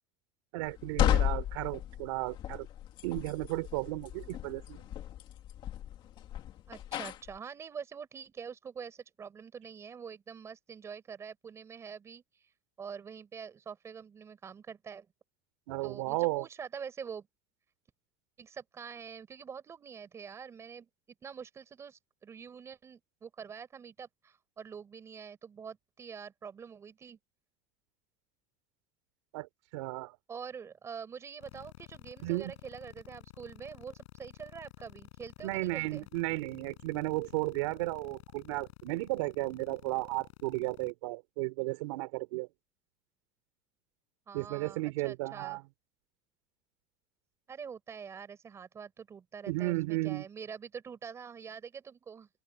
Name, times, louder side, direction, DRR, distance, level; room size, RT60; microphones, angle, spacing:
voice 1, 0.5-2.7 3.0-4.8 15.7-16.5 29.3-30.2 32.2-32.5 35.4-42.5 44.3-45.6 49.5-50.2, right 22 dB, 90° right, 3.2 m, -34 dB
sound 1, 0.7-7.4, left 11 dB, 35° left, 2.3 m, -34 dB
voice 2, 6.7-12.2 12.8-15.1 15.8-17.3 18.4-20.9 21.2-27.2 30.3-36.1 44.3-45.6 47.5-52.3, right 6 dB, 20° right, 4.9 m, -45 dB
sound 2, 31.4-40.9, left 23 dB, 85° left, 8.0 m, -51 dB
open air
cardioid pair, 180°, 15 cm